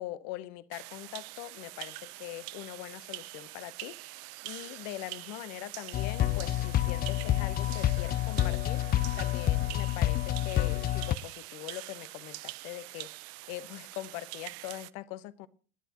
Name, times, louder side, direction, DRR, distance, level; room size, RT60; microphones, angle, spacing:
voice 1, 0.0-8.9 9.2-15.5, left 15 dB, 55° left, 1.0 m, -42 dB
Drops aquaticophone, 0.7-14.9, right 20 dB, 55° right, 0.7 m, -45 dB
sound 1, 5.9-11.1, left 13 dB, 30° left, 0.5 m, -28 dB
28.0 x 10.0 x 3.0 m
hypercardioid pair, 85°, 30 cm